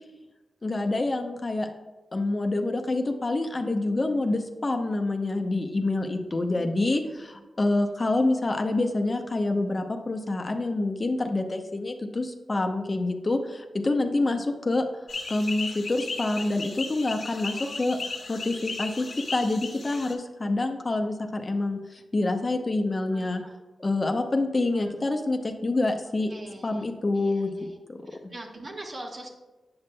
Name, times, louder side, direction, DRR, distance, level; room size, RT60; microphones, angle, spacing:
voice 1, 0.6-1.7 2.1-14.9 15.3-18.0 18.3-19.1 19.3-23.4 23.8-26.3 26.6-27.5 27.9-28.0, left 2 dB, 35° left, 4 dB, 0.7 m, -27 dB
voice 2, 6.5-7.4 13.9-14.4 17.5-18.1 23.1-23.5 24.7-25.0 26.3-27.8 28.0-29.3, right 2 dB, 50° right, 1 dB, 1.2 m, -44 dB
sound 1, 15.1-20.1, left 3 dB, 65° left, 0.9 m, -36 dB
8.6 x 5.9 x 2.2 m, 1.1 s
cardioid pair, 55°, 0 cm